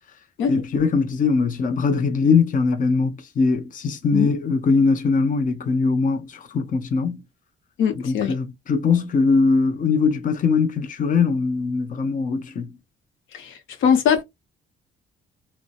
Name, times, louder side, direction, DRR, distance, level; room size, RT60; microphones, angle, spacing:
voice 1, 0.5-7.2 8.0-12.7, left 4 dB, 40° left, 0.6 m, -21 dB
voice 2, 7.8-8.3 13.3-13.5 13.8-14.2, left 7 dB, 80° left, 0.7 m, -20 dB
2.6 x 2.1 x 2.4 m
cardioid pair, 90°, 20 cm